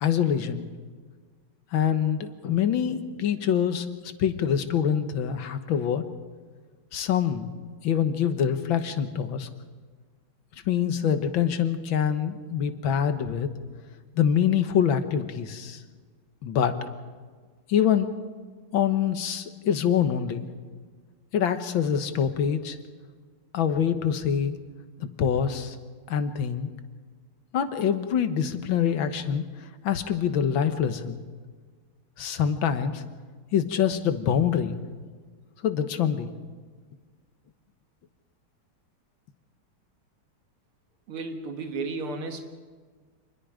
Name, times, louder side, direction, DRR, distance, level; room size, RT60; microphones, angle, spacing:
voice 1, 0.0-0.7 1.7-3.9 4.2-6.1 6.9-7.5 7.8-9.5 10.7-13.5 14.2-15.8 16.4-16.8 17.7-18.1 18.7-20.5 21.3-22.8 23.5-24.6 25.0-25.8 26.1-26.7 27.5-31.2 32.2-33.0 33.5-34.8 35.6-36.3, left 8 dB, 70° left, 9 dB, 1.9 m, -25 dB
voice 2, 41.1-42.5, right 3 dB, 85° right, 5 dB, 2.5 m, -33 dB
27.0 x 20.5 x 5.0 m, 1.5 s
omnidirectional pair, 2.3 m